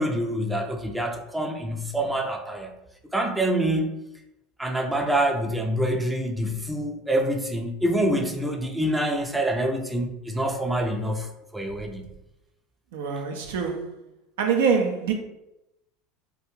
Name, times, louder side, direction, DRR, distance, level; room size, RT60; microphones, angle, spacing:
voice 1, 0.0-2.7 3.1-3.9 4.6-12.1, right 1 dB, 5° right, 3 dB, 0.4 m, -26 dB
voice 2, 12.9-13.9 14.4-15.1, right 6 dB, 80° right, 4 dB, 0.4 m, -24 dB
2.4 x 2.1 x 3.1 m, 0.90 s
hypercardioid pair, 90°, 0 cm